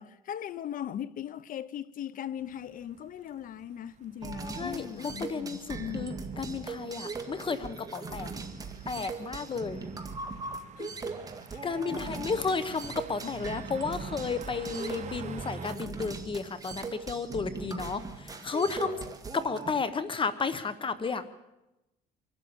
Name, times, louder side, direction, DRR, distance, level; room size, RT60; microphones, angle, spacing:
voice 1, 0.0-6.1 10.8-11.2 11.5-12.3 13.2-13.3 18.8-18.9, left 10 dB, 55° left, 0.9 m, -39 dB
sound 1, 2.4-15.8, right 6 dB, 45° right, 1.3 m, -48 dB
sound 2, 4.2-19.7, right 4 dB, 20° right, 2.1 m, -40 dB
voice 2, 4.5-8.3 8.9-9.8 11.6-19.0 19.3-21.3, left 4 dB, 30° left, 1.1 m, -33 dB
24.5 x 12.5 x 8.8 m
cardioid pair, 110°, 17 cm